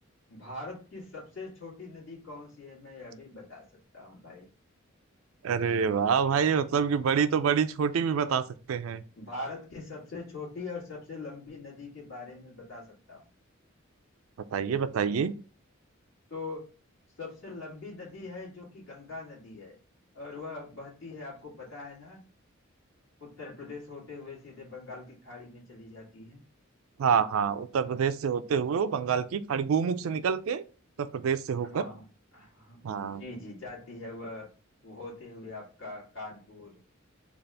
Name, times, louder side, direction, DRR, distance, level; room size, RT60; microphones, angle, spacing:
voice 1, 0.3-3.7 3.9-4.5 9.1-13.3 16.3-16.7 17.2-19.8 20.1-22.2 23.2-26.4 31.6-32.1 32.3-32.8 33.2-34.5 34.8-37.1, left 3 dB, 70° left, 2.0 m, -42 dB
voice 2, 5.4-9.0 14.5-15.4 27.0-30.6 31.0-31.9 32.8-33.2, right 6 dB, 85° right, 0.4 m, -27 dB
3.9 x 2.4 x 3.3 m
head